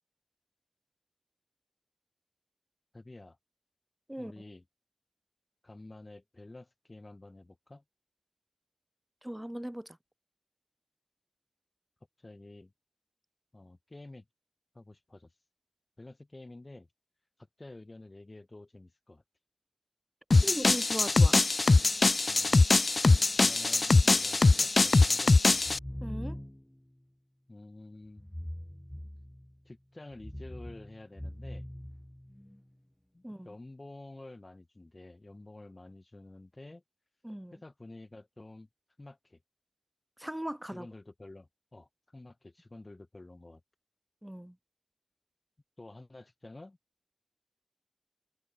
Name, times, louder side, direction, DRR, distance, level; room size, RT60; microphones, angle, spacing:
voice 1, 2.9-3.4 4.2-4.6 5.6-7.8 12.2-12.7 13.5-14.3 14.7-15.3 16.0-16.9 17.6-19.2 22.3-22.7 23.5-25.6 27.5-28.2 29.7-31.7 33.1-36.8 37.5-38.7 39.0-39.4 40.7-43.6 45.8-46.8, left 2 dB, 35° left, 5.4 m, -50 dB
voice 2, 9.2-10.0 20.4-21.4 26.0-26.4 33.2-33.5 37.2-37.6 40.2-40.9 44.2-44.6, right 1 dB, 10° right, 3.7 m, -38 dB
sound 1, 20.3-25.8, left 3 dB, 55° left, 0.5 m, -23 dB
sound 2, 25.5-26.8 28.2-29.6 30.1-32.6, equal, 10° left, 7.5 m, -42 dB
wide cardioid pair, 65°, 0 cm